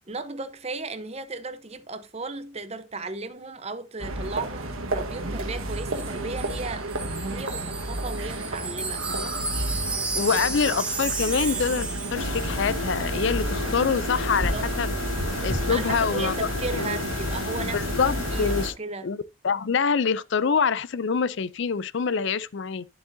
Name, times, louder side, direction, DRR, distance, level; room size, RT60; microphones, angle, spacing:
voice 1, 0.1-6.9 7.2-9.4 14.3-14.7 15.7-17.8 18.3-19.1, right 3 dB, 30° right, 0.9 m, -35 dB
sound 1, 4.0-18.7, right 2 dB, 80° right, 1.5 m, -32 dB
Wind chime, 5.6-12.8 13.1-13.3, right 3 dB, 5° right, 1.6 m, -33 dB
voice 2, 10.2-14.9 15.4-17.0 17.7-18.7 19.0-22.9, left 5 dB, 55° left, 0.4 m, -26 dB
sound 2, 12.1-18.7, left 2 dB, 85° left, 4.6 m, -30 dB
11.0 x 7.3 x 2.7 m
head